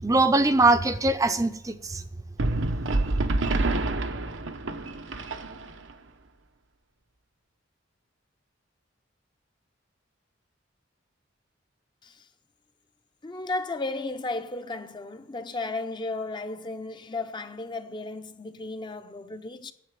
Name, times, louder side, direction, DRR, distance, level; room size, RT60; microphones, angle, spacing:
voice 1, 0.0-2.0, right 2 dB, 20° right, 0.6 m, -22 dB
sound 1, 2.4-5.9, right 2 dB, 90° right, 0.9 m, -27 dB
voice 2, 13.2-19.7, left 2 dB, 25° left, 0.6 m, -34 dB
9.4 x 7.5 x 9.2 m
head